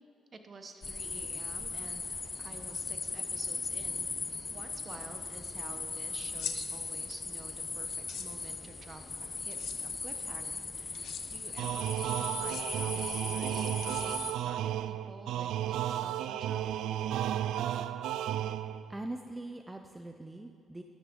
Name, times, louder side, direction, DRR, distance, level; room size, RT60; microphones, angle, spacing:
voice 1, 0.3-2.1 2.4-4.1 4.5-16.8, right 3 dB, 40° right, 7 dB, 1.0 m, -51 dB
sound 1, 0.8-14.3, left 4 dB, 30° left, 0.7 m, -38 dB
sound 2, 6.3-6.6 7.9-8.3 9.5-9.8 10.9-11.2 12.3-12.6 13.8-14.4, left 8 dB, 70° left, 0.8 m, -41 dB
sound 3, 11.6-19.0, right 11 dB, 85° right, 0.3 m, -33 dB
voice 2, 18.9-20.8, right 2 dB, 15° right, 5 dB, 0.5 m, -42 dB
12.5 x 11.0 x 3.8 m, 2.3 s
cardioid pair, 90°, 0 cm